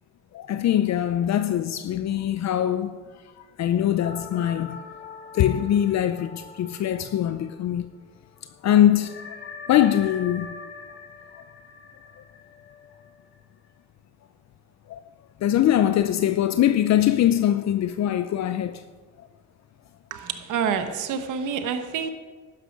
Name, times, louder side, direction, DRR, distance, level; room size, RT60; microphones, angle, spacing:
voice 1, 0.3-3.0 3.6-4.8 5.3-7.9 8.6-9.4 9.7-10.5 14.9-15.0 15.4-18.8, left 11 dB, 60° left, 0.6 m, -22 dB
sound 1, 4.0-8.0 8.3-8.4 9.0-13.7, left 5 dB, 40° left, 1.9 m, -43 dB
voice 2, 20.1-22.1, right 7 dB, 85° right, 1.2 m, -28 dB
12.0 x 9.9 x 5.3 m
cardioid pair, 90°, 30 cm